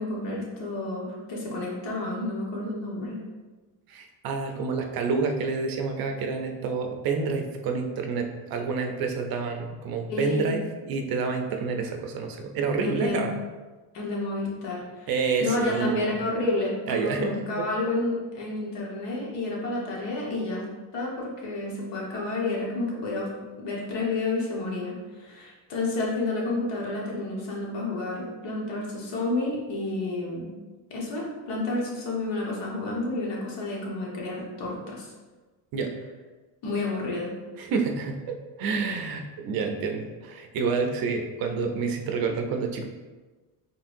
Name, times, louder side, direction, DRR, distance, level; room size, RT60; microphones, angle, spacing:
voice 1, 0.0-3.2 10.1-10.5 12.8-13.2 13.9-15.1 15.4-20.7 20.9-23.3 23.6-30.5 30.9-35.1 36.6-37.3, left 2 dB, 65° left, -3 dB, 1.4 m, -30 dB
voice 2, 3.9-13.4 15.1-16.2 16.9-17.7 35.7-35.9 37.6-42.9, right 4 dB, 55° right, 4 dB, 0.6 m, -28 dB
4.4 x 3.3 x 2.6 m, 1.3 s
cardioid pair, 120°, 45 cm